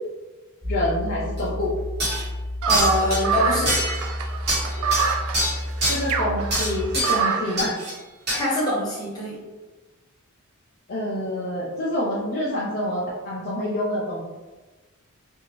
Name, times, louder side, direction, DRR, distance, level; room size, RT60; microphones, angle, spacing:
voice 1, 0.6-1.7 5.9-7.7 10.9-14.2, left 1 dB, 45° left, -6 dB, 0.5 m, -27 dB
sound 1, 0.6-6.8, left 1 dB, ahead, 0.5 m, -31 dB
sound 2, 1.4-1.5 2.0-2.3 2.7-3.2 3.7-4.1 4.5-6.0 6.5-7.2 7.6-7.9 8.3-8.4, right 1 dB, 50° right, 1.1 m, -25 dB
sound 3, 2.6-7.6, right 5 dB, 65° right, 0.3 m, -26 dB
voice 2, 2.7-3.8 8.3-9.4, left 1 dB, 20° left, -7 dB, 1.0 m, -24 dB
2.7 x 2.5 x 3.0 m, 1.2 s
head